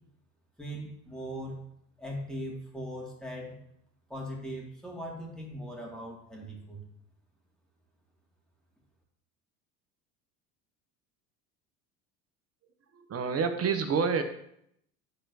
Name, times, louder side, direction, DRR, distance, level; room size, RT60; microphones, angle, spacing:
voice 1, 0.6-1.6 2.0-3.6 4.1-6.8, equal, ahead, -2 dB, 2.1 m, -39 dB
voice 2, 12.9-14.2, right 5 dB, 30° right, 8 dB, 0.9 m, -28 dB
10.5 x 3.7 x 2.7 m, 0.72 s
hypercardioid pair, 70°, 48 cm